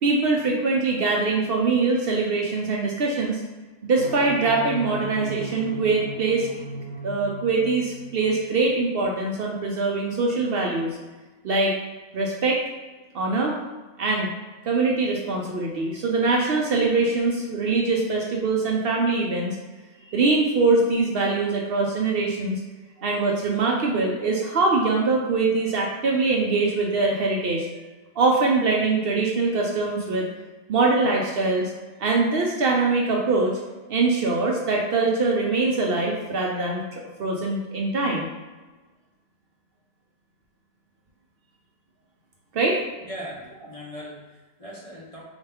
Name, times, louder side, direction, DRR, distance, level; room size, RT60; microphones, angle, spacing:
voice 1, 0.0-3.4 3.8-6.5 7.0-11.0 11.4-11.7 12.1-12.6 13.1-13.6 14.0-14.3 14.6-19.6 20.1-22.6 23.0-27.7 28.2-30.3 30.7-31.7 32.0-33.6 33.9-38.3 42.5-42.8, right 3 dB, 65° right, -1 dB, 0.7 m, -23 dB
sound 1, 4.0-9.0, right 2 dB, 65° left, 1.6 m, -36 dB
voice 2, 43.0-45.2, equal, 35° left, -5 dB, 0.6 m, -39 dB
4.4 x 2.4 x 3.4 m, 1.2 s
omnidirectional pair, 1.2 m